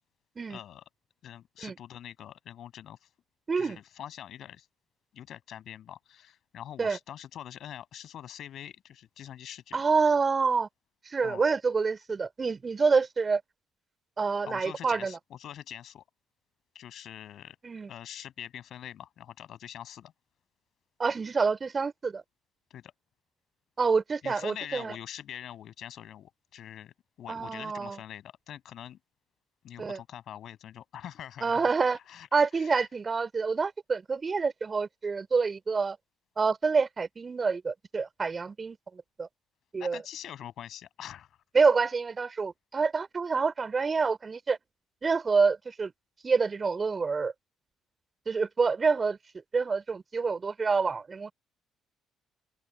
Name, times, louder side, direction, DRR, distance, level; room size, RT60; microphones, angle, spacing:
voice 1, 0.5-0.8 1.2-3.1 3.6-4.7 5.1-9.8 11.2-11.4 14.4-16.0 16.7-17.6 17.9-20.1 22.7-22.9 24.2-29.0 29.6-31.7 31.9-32.3 32.5-32.8 39.7-41.4, left 10 dB, 60° left, 7.6 m, -44 dB
voice 2, 3.5-3.8 6.8-7.0 9.7-10.7 11.1-13.4 14.2-15.2 17.6-17.9 21.0-22.2 23.8-24.9 27.3-28.0 29.8-30.0 31.4-32.0 32.3-36.0 36.4-39.3 39.7-40.0 41.5-44.6 45.0-45.9 46.2-47.3 48.3-49.2 49.5-51.3, right 4 dB, 35° right, 3.5 m, -27 dB
open air
hypercardioid pair, 50°, 0 cm